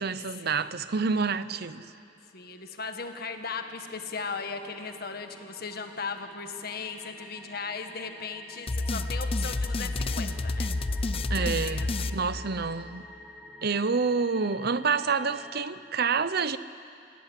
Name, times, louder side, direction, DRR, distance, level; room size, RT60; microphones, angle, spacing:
voice 1, 0.0-1.9 11.3-13.0 13.6-16.6, right 5 dB, 55° right, 0.8 m, -28 dB
voice 2, 2.3-10.7 11.0-11.1 11.3-12.2, left 4 dB, 55° left, 1.8 m, -37 dB
sound 1, 2.4-15.6, left 1 dB, ahead, 1.2 m, -49 dB
sound 2, 8.7-12.9, left 2 dB, 30° left, 0.6 m, -30 dB
27.5 x 17.0 x 10.0 m
head